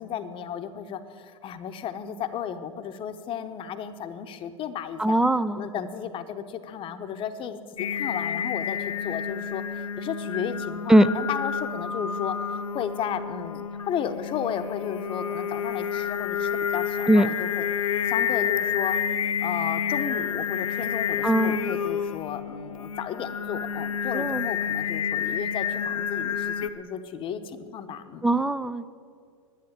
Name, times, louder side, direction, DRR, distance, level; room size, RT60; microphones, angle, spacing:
voice 1, 0.0-5.2 5.6-12.4 12.7-17.7 18.0-19.0 19.4-28.3, left 8 dB, 30° left, 9 dB, 0.9 m, -34 dB
voice 2, 5.0-5.7 10.9-11.1 17.1-17.3 21.2-21.7 24.1-24.5 28.2-28.9, right 1 dB, 5° right, 14 dB, 0.4 m, -20 dB
Singing, 7.8-26.7, left 7 dB, 80° left, 0.7 m, -29 dB
10.5 x 9.6 x 8.5 m, 2.3 s
hypercardioid pair, 100°, 17 cm